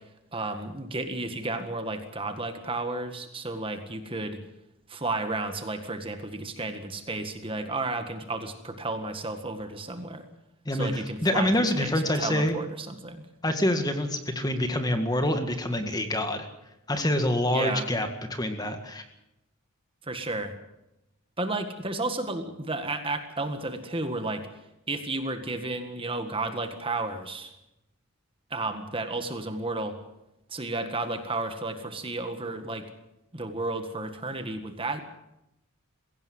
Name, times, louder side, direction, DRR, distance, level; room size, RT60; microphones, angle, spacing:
voice 1, 0.3-4.4 4.9-10.2 10.7-13.2 17.5-17.9 20.1-20.5 21.4-24.5 24.9-27.5 28.5-30.0 30.5-32.8 33.3-35.0, right 2 dB, 25° right, 7 dB, 1.7 m, -32 dB
voice 2, 10.7-12.6 13.4-16.5 16.9-19.0, left 1 dB, 15° left, 6 dB, 1.9 m, -26 dB
22.0 x 16.5 x 7.9 m, 0.88 s
head